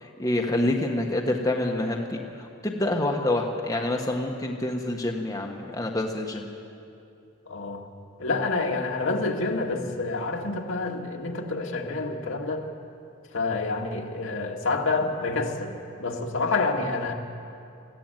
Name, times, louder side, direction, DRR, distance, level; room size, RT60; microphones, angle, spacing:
voice 1, 0.0-6.5, left 1 dB, 15° left, 0 dB, 1.4 m, -27 dB
voice 2, 7.5-7.8 8.2-12.7 13.3-15.7 16.0-17.1, left 3 dB, 70° left, 0 dB, 2.1 m, -28 dB
21.0 x 15.5 x 9.1 m, 2.6 s
head